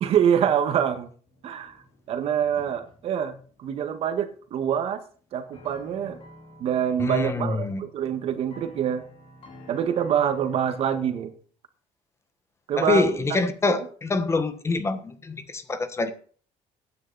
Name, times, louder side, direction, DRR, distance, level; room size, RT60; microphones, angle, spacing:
voice 1, 0.0-1.1 1.4-1.8 2.1-5.0 5.3-6.2 6.6-9.1 9.7-11.3 12.7-13.1 13.7-13.8, right 8 dB, 55° right, 1.7 m, -25 dB
sound 1, 1.3-10.7, left 1 dB, 50° left, 4.6 m, -51 dB
voice 2, 7.0-7.8 12.8-16.1, left 3 dB, 20° left, 1.4 m, -25 dB
15.5 x 9.7 x 4.1 m
cardioid pair, 145°, 12 cm